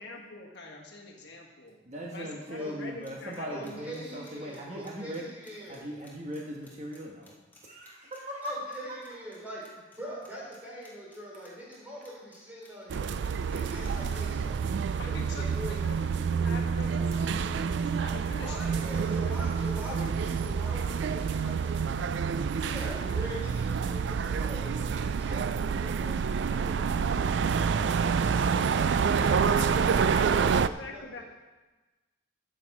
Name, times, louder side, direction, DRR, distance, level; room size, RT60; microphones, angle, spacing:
voice 1, 0.0-1.8 2.1-4.2 15.0-15.9 16.3-18.8 19.2-19.3 29.6-31.2, left 2 dB, 55° left, -1 dB, 1.6 m, -44 dB
voice 2, 1.8-5.2 5.7-7.3 7.6-9.0, equal, 35° right, -2 dB, 1.3 m, -39 dB
sound 1, 3.0-9.4 9.6-10.0 10.2-11.8 12.0-14.2, left 3 dB, 10° left, 1.7 m, -58 dB
voice 3, 3.5-5.9 8.4-9.6 9.9-13.2 13.5-14.6 15.0-16.0 18.4-22.0 22.6-27.9 28.2-31.2, equal, 10° right, -6 dB, 3.9 m, -43 dB
sound 2, 12.9-30.7, right 6 dB, 65° right, 0.3 m, -28 dB
13.0 x 7.8 x 4.8 m, 1.2 s
head